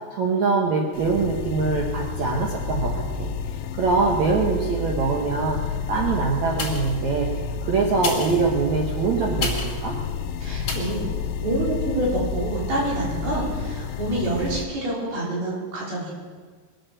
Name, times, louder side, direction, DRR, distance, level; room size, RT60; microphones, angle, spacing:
voice 1, 0.0-7.3 7.6-9.9, right 4 dB, 75° right, -1 dB, 1.6 m, -24 dB
sound 1, 0.9-14.7, left 5 dB, 85° left, 3.1 m, -30 dB
sound 2, 6.6-7.1 7.9-9.9 10.6-11.0 11.6-11.7, left 4 dB, 40° left, 2.9 m, -32 dB
voice 2, 10.4-16.1, right 1 dB, 55° right, -5 dB, 5.7 m, -27 dB
22.0 x 8.8 x 6.7 m, 1.5 s
omnidirectional pair, 5.3 m